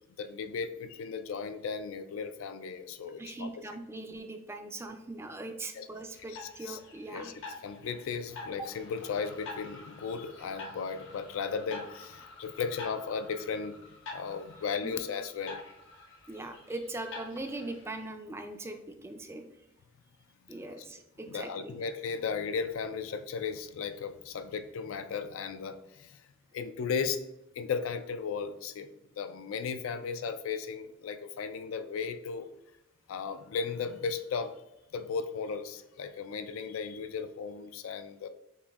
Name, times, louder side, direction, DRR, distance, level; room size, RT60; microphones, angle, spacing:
voice 1, 0.2-3.6 5.7-5.9 6.3-6.8 7.1-7.3 7.6-15.6 20.7-20.8 21.3-26.2 26.5-27.2 27.5-32.5 33.1-34.6 34.9-38.3, left 5 dB, 85° left, 10 dB, 0.4 m, -36 dB
voice 2, 3.2-7.3 8.6-8.7 14.8-15.0 16.3-19.4 20.5-21.7, right 2 dB, 15° right, 6 dB, 0.3 m, -40 dB
sound 1, 6.2-18.0, left 3 dB, 65° left, 0.8 m, -47 dB
6.9 x 2.6 x 2.4 m, 0.88 s
head